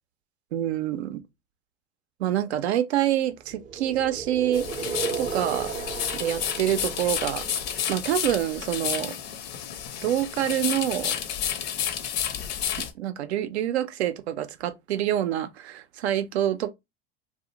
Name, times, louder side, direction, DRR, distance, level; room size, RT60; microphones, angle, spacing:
voice 1, 0.5-1.2 2.2-5.7 6.1-7.4 7.9-9.1 10.0-11.1 13.0-16.7, right 11 dB, 80° right, 0.5 m, -26 dB
sound 1, 3.5-8.4, right 6 dB, 25° right, 0.5 m, -35 dB
sound 2, 4.5-12.9, left 9 dB, 50° left, 0.6 m, -31 dB
2.4 x 2.1 x 2.8 m
hypercardioid pair, 85°, 33 cm